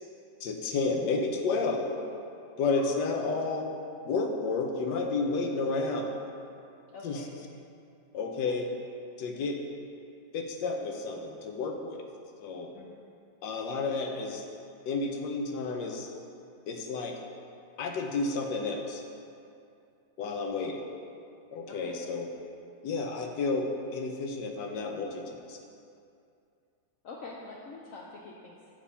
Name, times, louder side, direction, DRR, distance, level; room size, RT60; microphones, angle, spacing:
voice 1, 0.4-1.9 2.6-3.7 4.0-6.2 7.0-7.2 8.1-8.7 9.2-9.6 10.3-12.0 12.4-12.7 13.4-14.4 14.9-16.1 16.7-17.1 17.8-19.0 20.2-20.8 21.5-22.3 22.8-25.6, left 3 dB, 85° left, 3 dB, 1.3 m, -31 dB
voice 2, 6.9-7.3 12.7-13.0 21.7-22.0 27.0-28.7, left 3 dB, 65° left, -3 dB, 0.8 m, -44 dB
7.4 x 3.4 x 5.5 m, 2.5 s
omnidirectional pair, 1.9 m